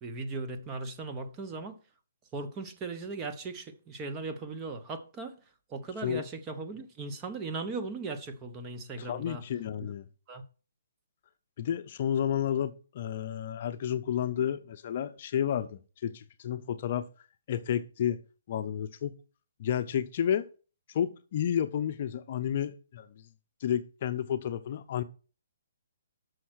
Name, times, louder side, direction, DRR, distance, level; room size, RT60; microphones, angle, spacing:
voice 1, 0.0-1.8 2.3-5.3 5.7-9.4 9.8-9.9 10.3-10.4, right 3 dB, 20° right, 0.9 m, -38 dB
voice 2, 9.0-10.1 11.6-17.1 17.5-18.2 18.5-19.2 19.6-20.5 20.9-23.2 23.6-25.0, left 9 dB, 45° left, 0.6 m, -31 dB
6.4 x 5.6 x 6.3 m
hypercardioid pair, 155°, 0 cm